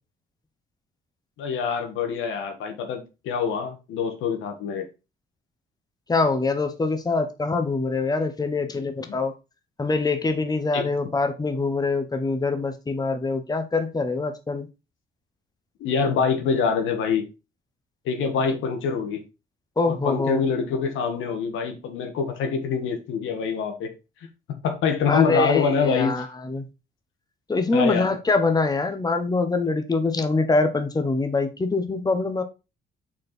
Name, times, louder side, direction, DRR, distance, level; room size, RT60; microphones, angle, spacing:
voice 1, 1.4-4.9 9.1-9.2 10.7-10.9 15.8-17.2 18.0-19.2 19.9-23.9 24.6-26.1 27.7-28.1, left 6 dB, 90° left, 1.5 m, -25 dB
voice 2, 6.1-9.3 9.8-14.7 19.8-20.5 25.1-26.7 27.5-32.4, left 3 dB, 20° left, 1.1 m, -24 dB
6.2 x 4.5 x 4.3 m
cardioid pair, 90°, 20 cm